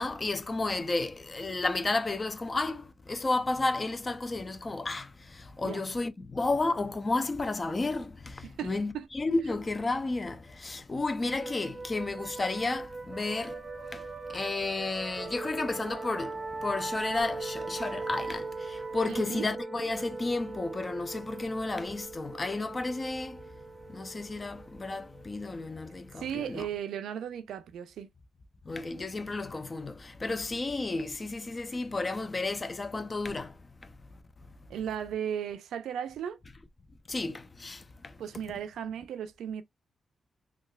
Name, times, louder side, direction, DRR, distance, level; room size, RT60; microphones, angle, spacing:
voice 1, 0.0-23.4 23.9-26.7 28.7-34.0 37.1-38.2, left 3 dB, 30° left, 0.5 m, -32 dB
voice 2, 8.4-9.1 19.1-19.5 26.2-28.1 34.7-36.4 38.2-39.6, right 9 dB, 90° right, 0.4 m, -36 dB
sound 1, 11.2-26.6, right 3 dB, 25° right, 0.6 m, -40 dB
3.3 x 2.3 x 2.3 m
cardioid pair, 90°, 0 cm